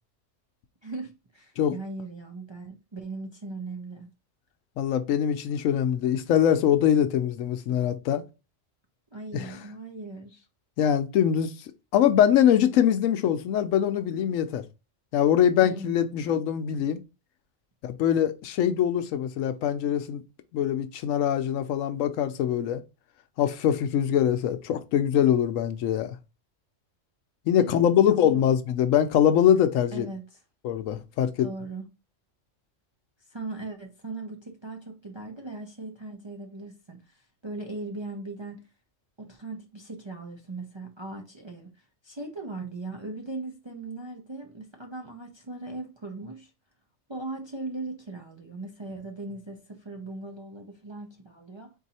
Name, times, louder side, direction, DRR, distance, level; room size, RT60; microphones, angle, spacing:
voice 1, 0.8-4.1 9.1-10.5 15.6-16.4 27.6-28.5 29.9-30.4 31.4-31.9 33.3-38.6 39.2-46.5 47.1-51.7, right 2 dB, 35° right, 0.4 m, -39 dB
voice 2, 4.8-8.2 9.3-9.5 10.8-11.5 11.9-14.6 15.1-17.0 17.8-20.2 20.5-22.8 23.4-26.2 27.5-30.1 30.6-31.5, left 9 dB, 85° left, 1.0 m, -23 dB
4.0 x 2.7 x 4.1 m
omnidirectional pair, 1.3 m